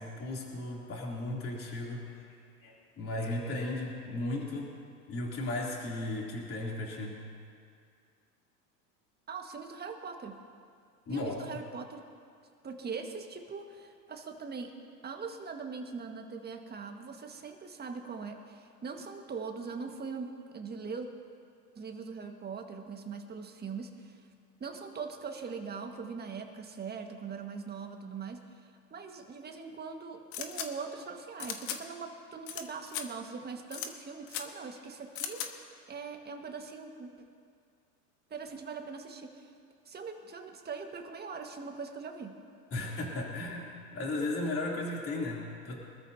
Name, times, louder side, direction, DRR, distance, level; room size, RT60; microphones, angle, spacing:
voice 1, 0.0-2.2 2.6-4.7 5.1-7.2 11.1-11.4 42.7-45.8, left 2 dB, 30° left, -3 dB, 3.1 m, -35 dB
voice 2, 9.3-10.4 11.1-12.0 12.6-14.8 15.0-21.1 21.8-24.3 24.6-35.4 35.9-37.2 38.3-39.5 39.9-42.4, right 5 dB, 20° right, 4 dB, 1.7 m, -41 dB
sound 1, 30.3-30.7 31.4-31.8 32.5-32.6 32.9-33.0 33.7-33.9 34.3-34.4 35.2-35.5, left 9 dB, 55° left, 1.6 m, -37 dB
24.5 x 13.5 x 2.8 m, 2.2 s
hypercardioid pair, 95°, 47 cm